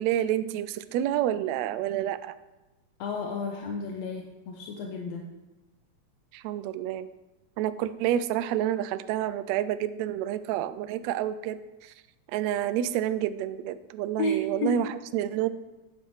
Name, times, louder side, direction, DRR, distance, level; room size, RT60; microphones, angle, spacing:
voice 1, 0.0-2.3 6.3-7.1 7.6-11.6 12.3-15.5, right 11 dB, 80° right, 12 dB, 1.6 m, -29 dB
voice 2, 3.0-5.3 14.2-14.8, left 2 dB, 70° left, 2 dB, 1.9 m, -31 dB
9.5 x 6.2 x 6.4 m, 1.1 s
omnidirectional pair, 3.6 m